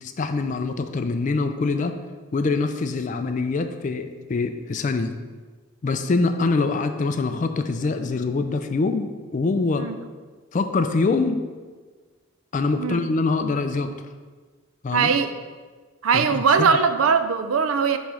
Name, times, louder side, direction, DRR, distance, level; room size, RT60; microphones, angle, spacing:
voice 1, 0.0-2.0 2.3-5.1 5.8-9.9 10.5-11.4 12.5-13.9 14.8-15.1 16.1-16.7, left 3 dB, 35° left, 8 dB, 0.3 m, -24 dB
voice 2, 14.9-15.3 16.0-18.0, right 5 dB, 85° right, 9 dB, 0.5 m, -20 dB
8.0 x 3.1 x 4.8 m, 1.4 s
head